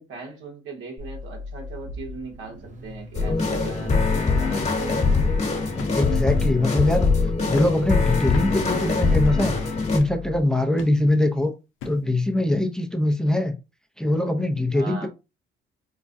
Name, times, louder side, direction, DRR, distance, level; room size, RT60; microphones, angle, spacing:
voice 1, 0.0-4.8 14.7-15.1, right 3 dB, 80° right, 1.3 m, -39 dB
Car / Idling / Accelerating revving vroom, 1.0-10.4, left 1 dB, 40° right, 0.8 m, -40 dB
sound 1, 3.1-10.0, left 4 dB, 35° left, 1.2 m, -22 dB
sound 2, 3.9-4.1 4.6-4.7 5.8-6.1 6.4-6.6 7.6-7.8 8.3-8.6 9.3-9.5 10.0-10.2 10.8-11.0 11.8-12.1 12.8-12.9, left 6 dB, 90° left, 0.6 m, -39 dB
voice 2, 5.9-7.1 7.4-9.5 9.9-11.5 11.8-13.5 14.0-15.1, left 1 dB, 5° left, 0.6 m, -22 dB
4.6 x 2.2 x 2.6 m
cardioid pair, 90°, 20 cm